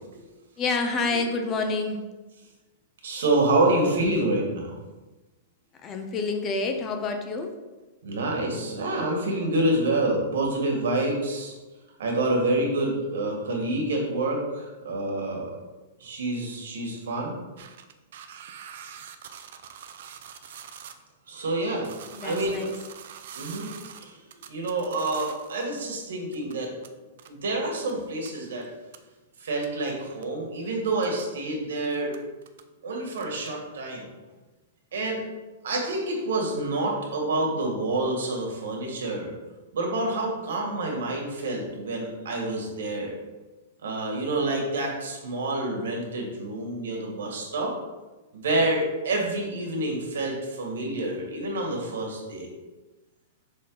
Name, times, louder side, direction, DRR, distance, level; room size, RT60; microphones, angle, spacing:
voice 1, 0.6-2.0 5.8-7.5 22.1-22.7, left 3 dB, 20° left, 5 dB, 0.5 m, -28 dB
voice 2, 3.0-4.8 8.0-11.6 12.0-15.5 16.0-17.4 21.3-21.9 22.2-22.7 23.3-23.7 24.0-24.2 24.5-26.7 27.3-28.7 29.4-32.1 32.8-34.1 34.9-35.2 35.6-39.3 39.7-43.2 43.8-47.7 48.3-52.5, right 2 dB, 90° right, 0 dB, 1.8 m, -27 dB
sound 1, 17.6-20.9 21.3-26.0 26.3-26.9 27.2-27.3 27.8-27.9 28.3-28.4 28.6-28.7 28.9-29.0 29.6-29.8 30.2-30.3 30.9-31.3 31.8-32.6 33.1-33.5, right 8 dB, 60° right, 0.5 m, -45 dB
6.3 x 3.8 x 3.9 m, 1.1 s
supercardioid pair, 170°, 0 cm